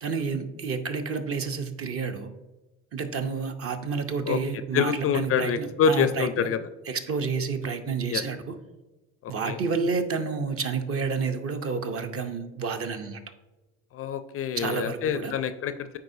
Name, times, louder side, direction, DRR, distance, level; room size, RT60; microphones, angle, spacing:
voice 1, 0.0-2.3 2.9-6.5 6.9-8.6 9.3-13.2 14.5-15.3, right 5 dB, 40° right, 7 dB, 0.8 m, -30 dB
voice 2, 4.7-6.6 8.1-8.2 9.2-9.6 13.9-16.0, left 7 dB, 40° left, 11 dB, 0.4 m, -26 dB
9.4 x 3.7 x 2.7 m, 1.1 s
supercardioid pair, 85°, 35 cm